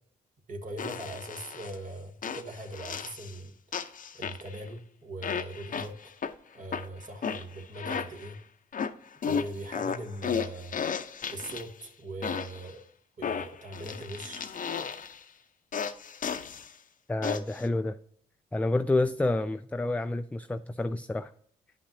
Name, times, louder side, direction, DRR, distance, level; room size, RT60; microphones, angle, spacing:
voice 1, 0.5-3.5 4.1-5.9 6.5-8.4 9.2-10.8 11.3-12.8 13.2-14.5, right 2 dB, 45° right, 3 dB, 1.4 m, -40 dB
sound 1, 0.8-1.8 2.2-3.4 3.7-4.7 5.2-6.3 6.7-8.4 8.7-11.8 12.2-12.7 13.2-15.2 15.7-16.7 17.2-17.7, left 7 dB, 50° left, 0.6 m, -34 dB
voice 2, 17.1-18.0 18.5-21.3, left 2 dB, 10° left, 10 dB, 0.3 m, -29 dB
10.0 x 5.6 x 2.7 m, 0.63 s
supercardioid pair, 50°, 18 cm